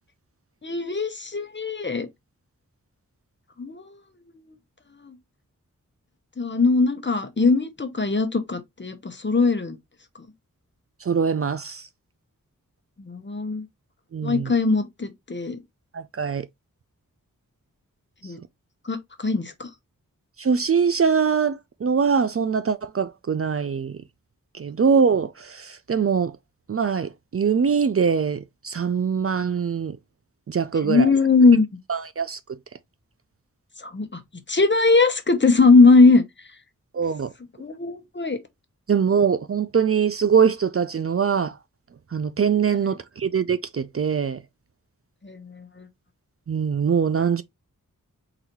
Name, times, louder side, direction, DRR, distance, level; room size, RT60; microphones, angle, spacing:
voice 1, 0.6-2.1 3.6-4.0 5.1-5.2 6.4-9.8 13.0-13.7 14.2-15.6 18.2-18.4 18.8-19.7 30.8-31.7 33.8-34.2 34.5-36.2 37.6-38.4 45.2-45.9, left 3 dB, 35° left, 0.9 m, -20 dB
voice 2, 11.0-11.9 14.1-14.5 15.9-16.5 20.4-23.9 24.5-26.3 26.7-30.0 30.5-31.1 31.9-32.6 36.9-37.3 38.9-41.5 42.1-44.4 46.5-47.4, right 6 dB, 45° right, 0.4 m, -23 dB
4.0 x 2.7 x 4.5 m
wide cardioid pair, 75°, 33 cm